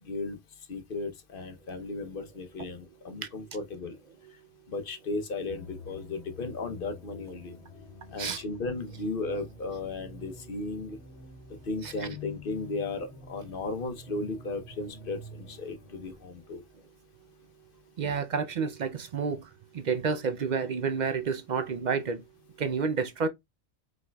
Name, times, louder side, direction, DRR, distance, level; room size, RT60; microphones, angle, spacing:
voice 1, 0.0-4.0 4.7-7.6 8.1-11.0 11.6-16.6, left 3 dB, 55° left, 0.9 m, -35 dB
sound 1, 5.5-16.1, left 2 dB, 75° left, 1.2 m, -47 dB
voice 2, 18.0-22.2 22.6-23.3, right 5 dB, 55° right, 0.5 m, -30 dB
4.7 x 4.1 x 2.2 m
omnidirectional pair, 1.2 m